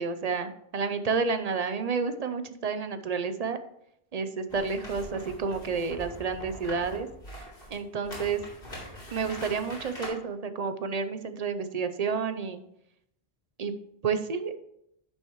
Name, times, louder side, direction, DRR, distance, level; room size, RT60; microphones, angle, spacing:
voice 1, 0.0-3.6 4.1-7.1 7.7-8.4 9.1-12.6 13.6-13.7 14.0-14.6, right 5 dB, 45° right, 10 dB, 0.6 m, -30 dB
sound 1, 4.5-10.1, equal, 65° left, 3.1 m, -43 dB
11.0 x 6.4 x 3.0 m, 0.76 s
omnidirectional pair, 1.0 m